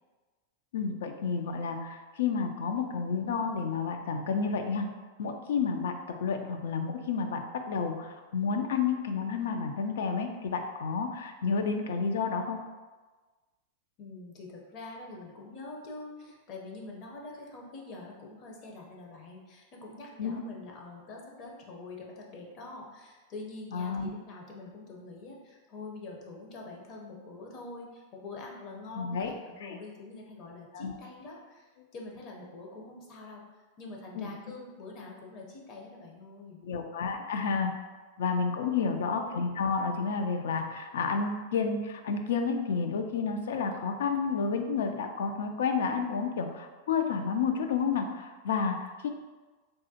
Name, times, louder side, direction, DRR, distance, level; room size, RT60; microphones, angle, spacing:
voice 1, 0.7-4.9 5.2-12.6 20.2-20.4 23.7-24.1 28.9-29.3 29.6-29.8 30.7-30.9 34.2-34.3 36.6-37.7 38.2-49.1, left 5 dB, 80° left, 6 dB, 0.3 m, -30 dB
voice 2, 14.0-33.4 33.8-36.6 38.5-39.1, left 3 dB, 45° left, -1 dB, 0.7 m, -45 dB
3.4 x 2.1 x 2.7 m, 1.3 s
hypercardioid pair, 115°, 0 cm